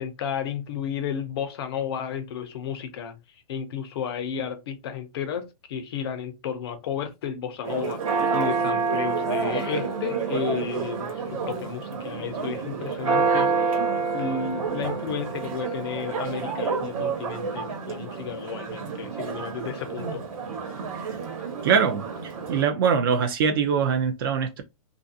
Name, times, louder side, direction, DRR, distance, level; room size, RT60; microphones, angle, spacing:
voice 1, 0.0-3.2 3.5-13.8 14.1-20.2, left 7 dB, 40° left, 0.5 m, -32 dB
Church bell, 7.6-22.6, right 5 dB, 60° right, 1.1 m, -28 dB
voice 2, 21.6-22.0 22.5-24.6, right 6 dB, 35° right, 0.4 m, -22 dB
2.5 x 2.4 x 2.5 m
hypercardioid pair, 165°, 20 cm